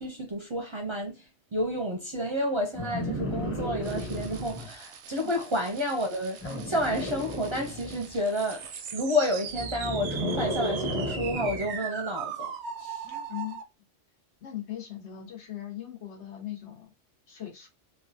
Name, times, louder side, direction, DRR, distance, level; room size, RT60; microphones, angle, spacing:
voice 1, 0.0-8.7 8.9-12.5 12.8-13.1, equal, 35° right, 0.5 m, -30 dB
sound 1, 2.7-4.7 6.4-8.1 9.4-11.7 13.1-13.2, equal, 15° left, 0.6 m, -34 dB
sound 2, 3.8-13.6, right 7 dB, 80° right, 0.9 m, -40 dB
voice 2, 13.3-13.6 14.4-16.9 17.3-17.7, left 12 dB, 85° left, 1.3 m, -39 dB
3.1 x 2.3 x 2.6 m
omnidirectional pair, 1.1 m